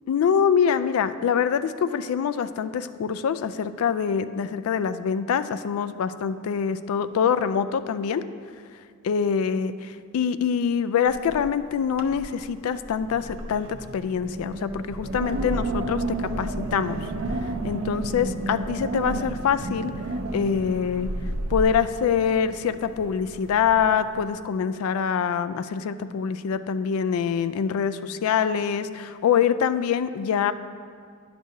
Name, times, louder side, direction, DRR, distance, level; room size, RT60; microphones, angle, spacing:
voice 1, 0.1-8.2 9.0-17.0 17.6-19.9 20.3-21.1 21.5-30.5, left 7 dB, 85° left, 13 dB, 0.3 m, -25 dB
Wind, 11.1-11.6 11.9-12.4 12.8-24.3, right 2 dB, 80° right, 0.6 m, -32 dB
10.5 x 6.1 x 2.7 m, 2.2 s
head